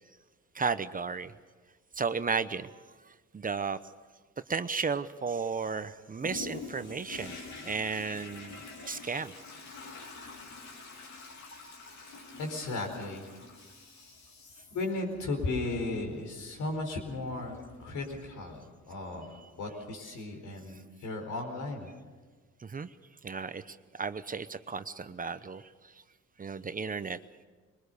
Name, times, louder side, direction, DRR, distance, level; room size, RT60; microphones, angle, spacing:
voice 1, 0.5-1.3 1.9-2.7 3.0-3.8 4.5-8.6 8.9-9.3 19.3-19.5 22.6-22.9 23.2-26.0 26.4-27.2, right 5 dB, 30° right, 12 dB, 0.8 m, -34 dB
Toilet flush, 6.2-18.6 19.2-19.3, left 4 dB, 65° left, 3.7 m, -47 dB
voice 2, 12.4-13.3 14.7-21.9, left 2 dB, 80° left, 3 dB, 4.7 m, -35 dB
22.5 x 20.5 x 6.8 m, 1.4 s
cardioid pair, 90°, 30 cm